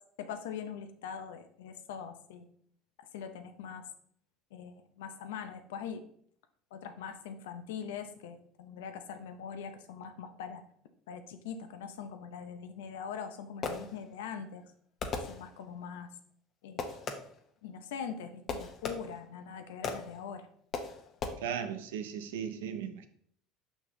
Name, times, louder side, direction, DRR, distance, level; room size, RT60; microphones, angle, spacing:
voice 1, 0.2-2.5 3.0-3.9 4.5-6.0 6.7-10.6 11.1-14.6 15.3-16.1 16.6-16.9 17.6-20.5, left 7 dB, 85° left, 9 dB, 0.7 m, -42 dB
Fireworks, 13.1-14.3 15.0-15.9 16.8-17.5 18.5-19.4 19.8-20.3 20.7-21.3, left 4 dB, 45° left, 1.0 m, -38 dB
voice 2, 21.4-23.1, right 8 dB, 90° right, 8 dB, 0.7 m, -37 dB
6.3 x 5.6 x 3.2 m, 0.64 s
supercardioid pair, 90°, 0 cm